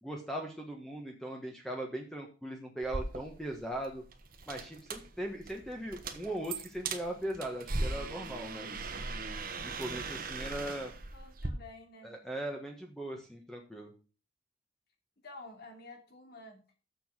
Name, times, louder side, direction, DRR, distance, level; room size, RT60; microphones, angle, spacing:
voice 1, 0.0-4.0 4.5-9.0 9.6-10.9 12.0-13.9, right 1 dB, ahead, 1 dB, 1.3 m, -39 dB
sound 1, 2.8-11.5, right 3 dB, 50° right, 1.3 m, -39 dB
voice 2, 11.1-12.1 15.2-16.7, left 2 dB, 55° left, 2 dB, 2.8 m, -50 dB
7.1 x 6.9 x 7.4 m, 0.35 s
head